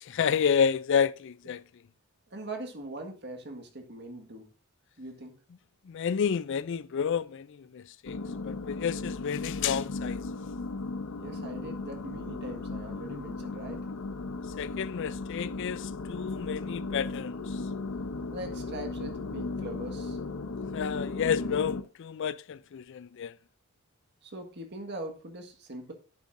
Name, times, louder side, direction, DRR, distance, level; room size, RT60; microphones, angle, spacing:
voice 1, 0.0-1.6 5.9-8.2 8.4-10.2 14.6-17.6 20.7-23.4, left 7 dB, 55° left, 0.4 m, -30 dB
voice 2, 2.3-4.5 5.0-5.3 11.2-13.8 18.3-20.2 24.2-25.9, right 2 dB, 50° right, 1.6 m, -41 dB
sound 1, 8.1-21.8, left 3 dB, 75° left, 0.8 m, -36 dB
10.5 x 8.2 x 2.6 m
head